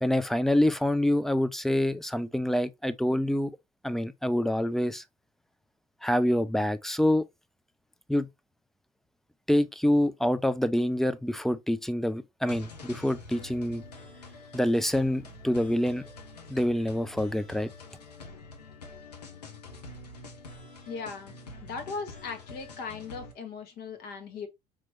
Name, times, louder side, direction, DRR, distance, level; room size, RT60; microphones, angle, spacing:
voice 1, 0.0-3.5 3.8-5.0 6.0-7.2 8.1-8.3 9.5-13.8 14.5-16.0 16.5-17.7, left 1 dB, ahead, 0.4 m, -26 dB
sound 1, 12.5-23.3, left 3 dB, 80° left, 0.9 m, -46 dB
voice 2, 20.9-21.3 21.6-24.5, left 5 dB, 55° left, 1.3 m, -38 dB
4.9 x 3.0 x 2.9 m
figure-of-eight pair, 60°, 20 cm